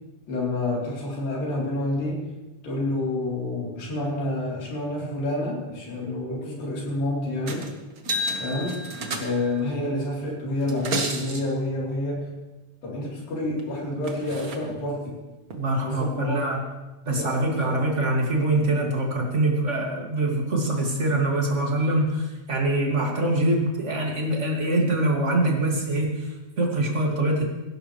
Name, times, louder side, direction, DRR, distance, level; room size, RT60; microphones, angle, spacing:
voice 1, 0.3-2.3 2.6-7.7 8.4-8.8 9.2-12.3 12.8-15.2 15.8-16.4 17.1-17.3 17.6-17.9, left 1 dB, 80° left, -4 dB, 5.5 m, -28 dB
sound 1, 7.5-7.7 8.0-9.6 10.6-11.4 13.6-13.7 14.0-14.6 15.5-15.6, right 1 dB, 80° right, 0.8 m, -31 dB
voice 2, 15.5-16.6 17.0-27.4, right 1 dB, 25° right, -1 dB, 2.0 m, -24 dB
17.0 x 16.5 x 3.3 m, 1.1 s
omnidirectional pair, 4.0 m